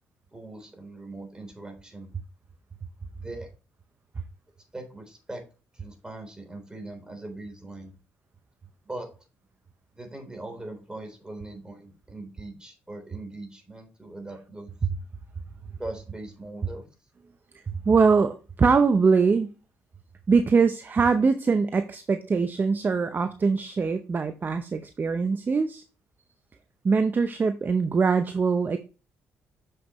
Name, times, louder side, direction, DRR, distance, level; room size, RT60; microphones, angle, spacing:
voice 1, 0.3-2.1 3.1-3.5 4.7-5.4 5.7-7.9 8.8-9.1 9.9-14.7 15.8-16.9, right 2 dB, 15° right, 4 dB, 3.6 m, -40 dB
voice 2, 17.5-19.5 20.3-25.8 26.8-28.8, right 5 dB, 35° right, 9 dB, 0.6 m, -22 dB
7.2 x 6.6 x 3.1 m, 0.33 s
supercardioid pair, 65°, 6 cm